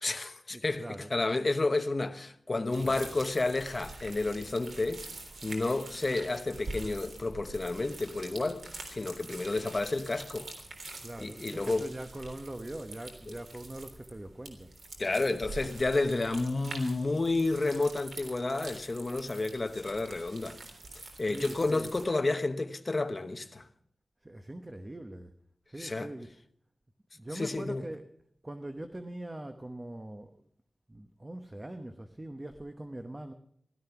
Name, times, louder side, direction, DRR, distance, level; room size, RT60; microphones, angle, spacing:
voice 1, 0.0-5.1 5.4-10.5 11.2-11.9 15.0-20.6 21.2-23.7 25.8-26.1 27.3-27.8, left 2 dB, 35° left, 1.1 m, -31 dB
voice 2, 0.5-1.1 2.8-3.2 11.0-14.7 21.3-21.9 24.2-25.3 25.7-26.3 27.1-28.1 28.4-30.4 30.9-33.3, right 1 dB, 20° right, 1.0 m, -42 dB
sound 1, 2.7-22.1, right 2 dB, 85° right, 3.4 m, -46 dB
16.5 x 13.0 x 5.9 m
wide cardioid pair, 105°, 0 cm